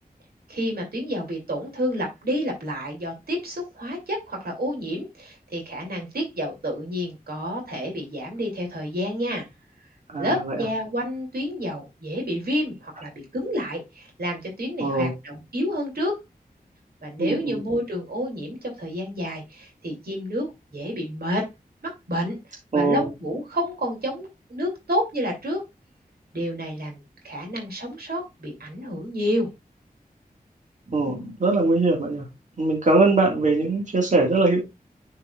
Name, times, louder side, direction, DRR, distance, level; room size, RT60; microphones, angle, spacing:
voice 1, 0.5-9.5 10.2-16.2 17.0-20.5 20.7-21.5 21.8-22.4 22.7-25.6 26.3-29.5, equal, 80° right, 1 dB, 2.7 m, -29 dB
voice 2, 10.1-10.6 14.8-15.1 17.2-17.6 22.7-23.0 30.9-32.2 32.6-34.6, right 2 dB, 50° right, -1 dB, 1.9 m, -21 dB
10.0 x 4.7 x 2.4 m, 0.22 s
wide cardioid pair, 85°, 15 cm